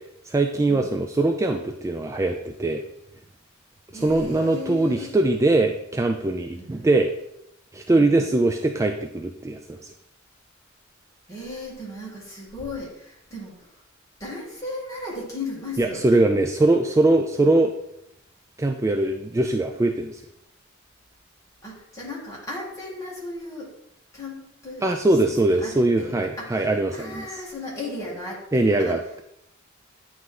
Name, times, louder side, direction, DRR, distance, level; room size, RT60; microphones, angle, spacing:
voice 1, 0.2-2.8 3.9-7.1 7.7-9.9 15.8-17.7 18.6-20.2 24.8-27.3 28.5-29.2, right 2 dB, 15° right, 4 dB, 0.3 m, -22 dB
voice 2, 3.9-5.1 6.5-7.0 7.9-8.4 11.3-13.8 14.2-16.2 21.6-23.7 24.1-24.9 25.2-29.0, left 2 dB, 15° left, -6 dB, 2.1 m, -36 dB
9.3 x 3.1 x 3.8 m, 0.77 s
head